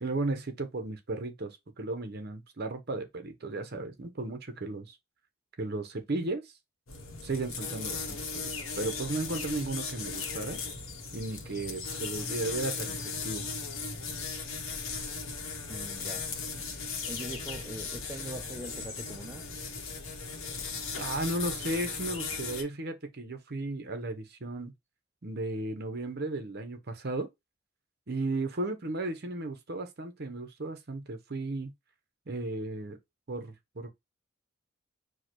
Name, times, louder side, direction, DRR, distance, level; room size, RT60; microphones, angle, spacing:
voice 1, 0.0-5.0 5.6-6.5 7.2-10.6 11.1-13.0 13.2-13.4 21.0-24.7 25.2-27.3 28.1-31.7 32.3-33.0 33.3-33.9, right 2 dB, 50° right, 0.8 m, -35 dB
sound 1, 6.9-22.6, left 4 dB, 70° left, 1.0 m, -37 dB
voice 2, 15.7-16.3 17.1-19.5, right 1 dB, 10° right, 0.4 m, -42 dB
4.6 x 2.2 x 4.5 m
head